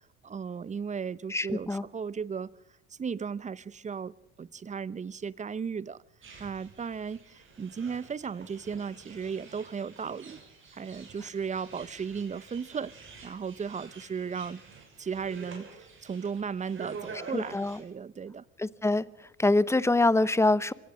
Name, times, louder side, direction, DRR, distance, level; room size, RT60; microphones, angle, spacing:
voice 1, 0.2-2.5 3.0-6.0 6.4-10.4 10.7-12.9 13.2-14.6 15.0-18.4, right 6 dB, 20° right, 0.7 m, -36 dB
voice 2, 1.3-1.8 17.3-17.8 18.6-19.0 19.4-20.7, left 2 dB, 10° left, 0.8 m, -24 dB
sound 1, 6.2-17.8, right 4 dB, 40° right, 6.7 m, -48 dB
25.5 x 17.0 x 6.3 m
supercardioid pair, 90°, 33 cm